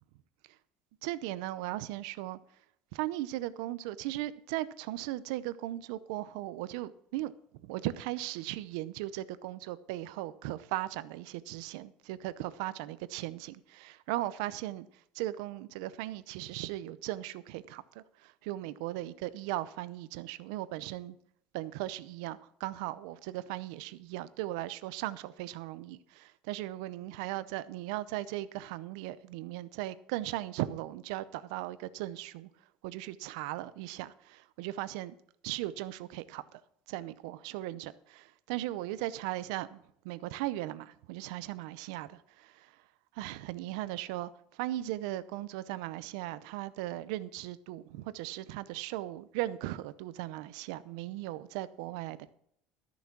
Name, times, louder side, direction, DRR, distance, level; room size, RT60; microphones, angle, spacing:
voice 1, 1.0-2.4 2.9-7.3 7.6-14.9 15.1-21.1 21.5-32.5 32.8-35.2 35.4-36.6 36.9-39.8 40.0-42.7 43.1-52.3, right 15 dB, 90° right, 0.6 m, -38 dB
13.0 x 7.1 x 6.0 m
cardioid pair, 155°, 3 cm